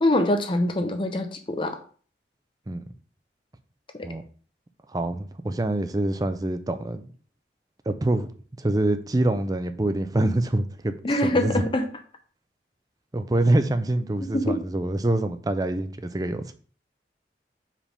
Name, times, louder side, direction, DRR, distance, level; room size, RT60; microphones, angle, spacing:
voice 1, 0.0-1.8 4.0-4.1 11.0-11.9 14.3-14.6, left 1 dB, 30° left, 0.6 m, -24 dB
voice 2, 4.9-7.1 7.9-8.3 8.6-10.9 11.2-11.6 13.1-16.5, right 1 dB, 20° right, 0.4 m, -25 dB
5.0 x 3.4 x 5.5 m
head